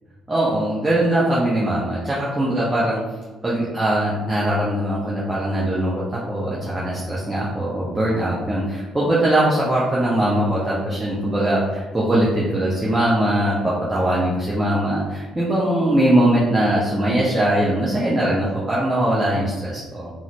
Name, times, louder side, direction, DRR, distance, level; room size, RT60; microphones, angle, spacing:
voice 1, 0.3-3.0 3.4-20.1, right 1 dB, 15° right, -7 dB, 0.8 m, -21 dB
3.9 x 2.0 x 2.9 m, 1.2 s
figure-of-eight pair, 45°, 0 cm